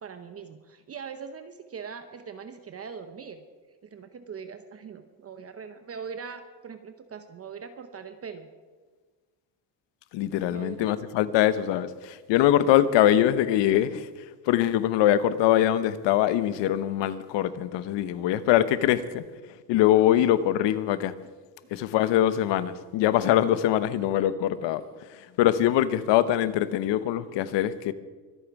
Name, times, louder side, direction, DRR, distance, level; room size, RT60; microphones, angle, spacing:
voice 1, 0.0-3.4 3.8-8.5 10.5-11.0, right 6 dB, 30° right, 0.9 m, -41 dB
voice 2, 10.1-14.1 14.5-19.3 19.7-21.1 21.7-27.9, left 12 dB, 65° left, 1.0 m, -23 dB
24.0 x 8.9 x 4.8 m
cardioid pair, 120°, 46 cm